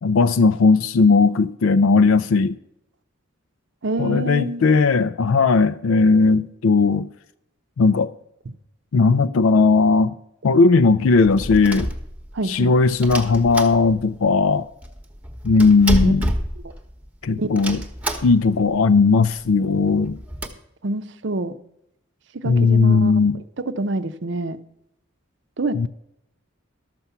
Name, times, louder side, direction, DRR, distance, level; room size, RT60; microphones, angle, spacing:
voice 1, 0.0-2.6 4.0-7.1 7.8-8.1 8.9-10.2 10.4-11.9 12.5-14.7 15.4-16.3 17.2-17.8 18.2-20.2 22.4-23.4 25.7-25.9, left 4 dB, 80° left, 0.4 m, -17 dB
voice 2, 3.8-4.7 12.3-12.7 16.0-16.1 17.4-17.6 20.8-21.5 22.3-23.1 23.7-24.6 25.6-25.9, right 2 dB, 55° right, 0.7 m, -26 dB
sound 1, 11.1-12.5 13.0-14.3 14.5-14.6 14.8-17.1 17.6-18.6 19.0-19.1 19.3-19.4 19.9-20.5, right 1 dB, 5° right, 1.0 m, -28 dB
12.5 x 6.9 x 5.7 m
head